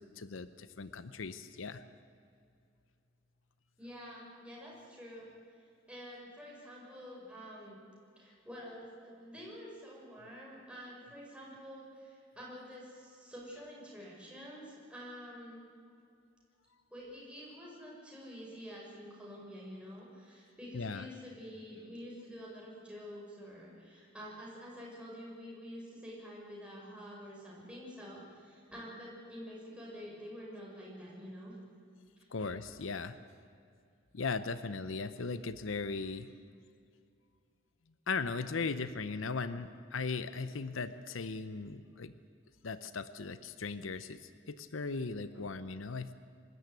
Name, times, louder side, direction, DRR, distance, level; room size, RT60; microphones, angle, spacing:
voice 1, 0.0-1.8 20.7-21.1 32.3-33.2 34.1-36.3 38.1-42.1 42.6-46.1, left 4 dB, 75° left, 13 dB, 0.7 m, -38 dB
voice 2, 3.8-5.3 5.9-7.8 8.2-15.6 16.9-31.5 32.2-32.3, equal, 5° right, -4 dB, 6.6 m, -48 dB
25.0 x 13.5 x 9.6 m, 2.4 s
head